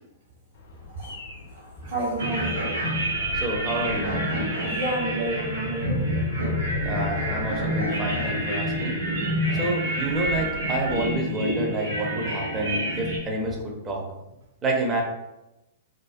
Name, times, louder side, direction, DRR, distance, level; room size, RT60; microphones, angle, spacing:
Bird vocalization bird call bird song, 0.5-11.0, left 4 dB, 55° left, 0.5 m, -42 dB
voice 1, 1.5-2.5 4.7-6.1 13.5-13.6, right 2 dB, 55° right, -3 dB, 1.1 m, -30 dB
sound 1, 2.2-13.2, equal, 80° right, 0.9 m, -27 dB
voice 2, 3.3-4.1 6.8-9.0 9.5-14.0 14.6-15.0, right 1 dB, 20° right, -1 dB, 0.5 m, -28 dB
2.3 x 2.2 x 2.5 m, 0.95 s
figure-of-eight pair, 110°, 0 cm